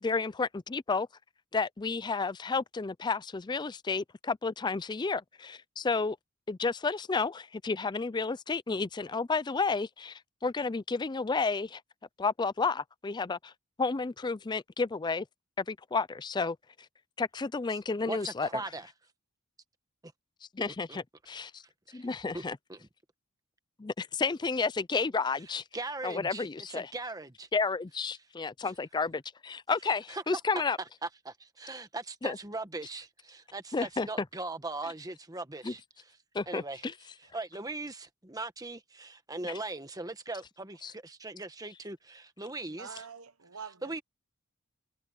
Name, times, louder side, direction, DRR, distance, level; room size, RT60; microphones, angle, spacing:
voice 1, 0.0-1.1 1.5-6.2 6.5-11.8 12.2-13.5 13.8-15.3 15.6-16.6 17.2-18.5 20.5-21.6 21.9-22.6 23.8-25.6 26.0-26.9 27.5-30.8 32.2-32.4 33.7-34.1 35.6-35.7 36.3-36.9 39.4-39.6 40.8-40.9, left 4 dB, 20° left, 0.4 m, -31 dB
voice 2, 18.1-18.9 20.9-21.0 21.9-22.1 22.3-22.4 22.7-22.9 25.7-27.5 28.6-28.7 30.1-30.2 31.0-35.8 36.5-36.9 37.3-43.0 43.8-44.0, right 2 dB, 15° right, 1.3 m, -39 dB
voice 3, 42.8-44.0, right 6 dB, 85° right, 1.2 m, -45 dB
head